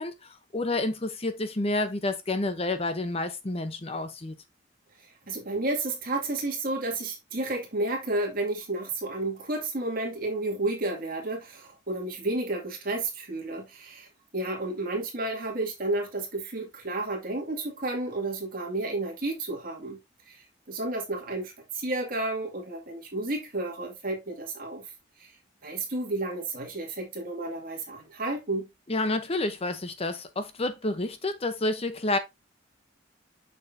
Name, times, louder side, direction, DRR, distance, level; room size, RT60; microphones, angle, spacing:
voice 1, 0.0-4.3 28.9-32.2, left 2 dB, 30° left, 0.8 m, -29 dB
voice 2, 5.3-14.1 14.3-20.0 20.3-24.8 25.2-25.3 25.6-28.7, right 2 dB, 50° right, 2.2 m, -31 dB
7.0 x 6.2 x 2.7 m
head